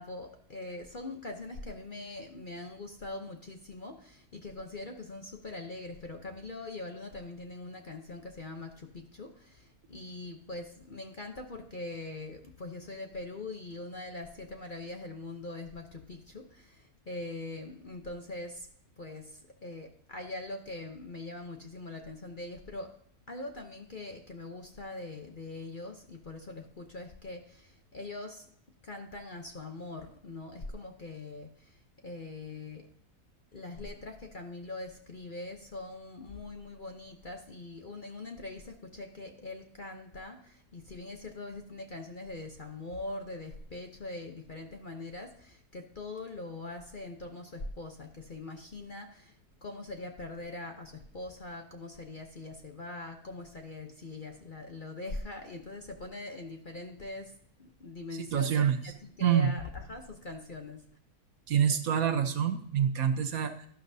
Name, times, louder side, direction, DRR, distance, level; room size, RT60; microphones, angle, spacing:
voice 1, 0.0-18.7 19.0-22.9 23.3-28.5 28.8-31.8 32.0-32.9 33.5-57.3 57.6-60.8, left 2 dB, 40° left, 4 dB, 0.8 m, -42 dB
voice 2, 58.1-58.8 59.2-59.5 61.5-63.7, right 8 dB, 65° right, 7 dB, 1.3 m, -27 dB
12.5 x 11.5 x 2.7 m, 0.62 s
omnidirectional pair, 1.7 m